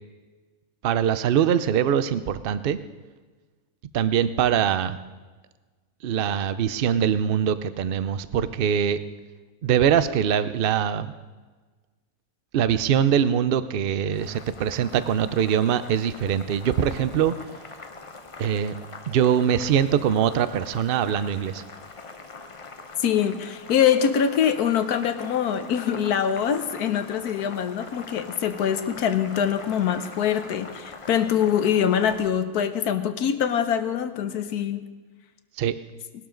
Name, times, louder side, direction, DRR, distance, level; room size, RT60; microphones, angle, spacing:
voice 1, 0.8-2.8 3.9-5.0 6.0-9.0 9.6-11.1 12.5-17.3 18.4-18.7 19.1-21.6 35.6-35.7, right 9 dB, 55° right, 13 dB, 0.6 m, -23 dB
Boiling, 14.1-32.3, left 3 dB, 30° left, 0.6 m, -43 dB
voice 2, 23.0-34.9, left 8 dB, 75° left, 10 dB, 1.3 m, -24 dB
19.5 x 12.0 x 3.9 m, 1.3 s
omnidirectional pair, 1.6 m